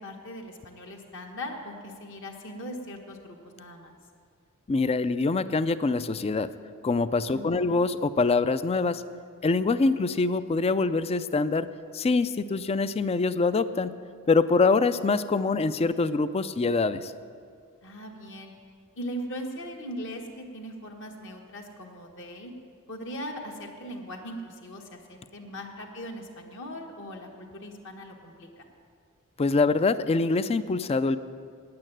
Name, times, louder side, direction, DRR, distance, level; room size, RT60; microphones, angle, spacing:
voice 1, 0.0-3.9 7.3-7.8 17.8-18.5 19.0-22.5 22.9-28.6, equal, 60° left, 2 dB, 1.5 m, -39 dB
voice 2, 4.7-6.5 6.8-9.0 9.4-11.7 11.9-13.9 14.3-17.1 29.4-31.2, left 3 dB, 30° left, 13 dB, 0.4 m, -24 dB
9.8 x 8.7 x 9.1 m, 2.2 s
head